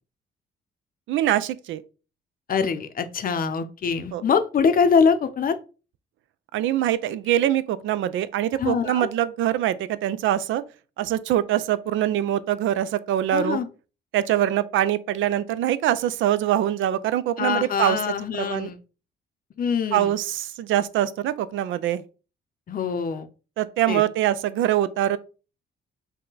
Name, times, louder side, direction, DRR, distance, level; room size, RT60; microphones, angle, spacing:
voice 1, 1.1-1.8 4.1-4.2 6.5-10.6 11.0-13.6 14.1-18.0 18.4-18.7 19.9-22.0 23.6-25.2, right 12 dB, 75° right, 0.4 m, -23 dB
voice 2, 2.5-5.6 8.6-9.1 13.3-13.7 17.4-18.8 19.6-20.1 22.7-23.3 23.9-24.0, left 6 dB, 45° left, 0.6 m, -23 dB
5.4 x 2.2 x 3.9 m
cardioid pair, 90°, 20 cm